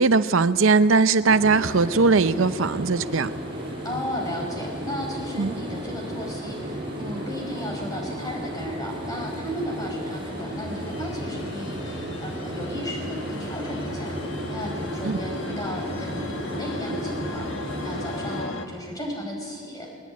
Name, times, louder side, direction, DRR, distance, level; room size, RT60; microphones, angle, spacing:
voice 1, 0.0-3.3 5.4-5.5 15.0-15.2, right 4 dB, 75° right, 12 dB, 0.6 m, -19 dB
Room Tone Office Building Bathroom Air Conditioner Run, 1.3-18.4, equal, 25° right, 7.2 m, -34 dB
voice 2, 3.8-14.2 14.5-20.0, equal, 15° left, 0 dB, 5.0 m, -34 dB
sound 1, 9.0-18.6, left 2 dB, 60° left, 1.6 m, -37 dB
20.0 x 20.0 x 9.3 m, 2.1 s
head